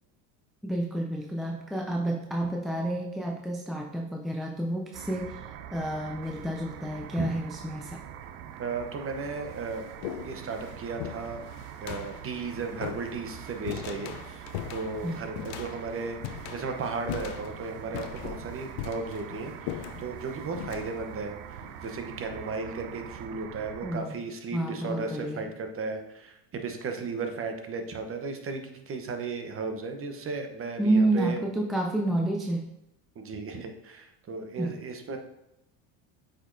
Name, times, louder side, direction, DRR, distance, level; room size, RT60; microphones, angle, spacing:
voice 1, 0.6-5.4 5.7-8.0 15.0-15.2 23.8-24.2 24.5-25.5 30.8-32.7 34.6-34.8, right 1 dB, ahead, 1 dB, 0.3 m, -29 dB
sound 1, 4.9-24.0, right 10 dB, 80° right, 0.6 m, -44 dB
sound 2, 6.2-6.7 7.6-7.7 8.6-8.7 9.0-22.6, left 11 dB, 65° left, 0.6 m, -41 dB
voice 2, 8.6-11.4 11.8-14.4 14.7-31.4 33.2-35.2, right 4 dB, 30° right, 5 dB, 0.8 m, -35 dB
8.2 x 5.2 x 2.6 m, 0.89 s
supercardioid pair, 110°, 44 cm